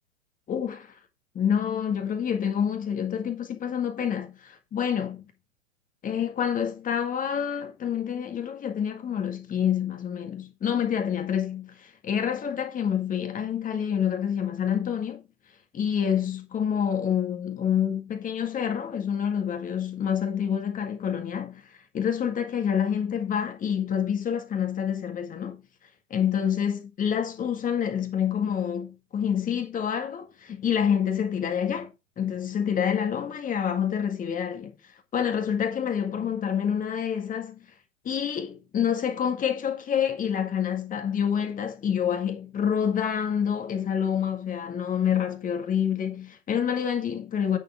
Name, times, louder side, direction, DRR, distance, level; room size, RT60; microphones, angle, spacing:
voice 1, 0.5-0.9 1.4-5.2 6.0-15.2 15.7-21.6 21.9-25.6 26.1-31.9 32.2-34.8 35.1-37.6 38.0-47.6, left 8 dB, 20° left, 1.9 m, -27 dB
9.2 x 7.0 x 3.6 m
hypercardioid pair, 115°, 38 cm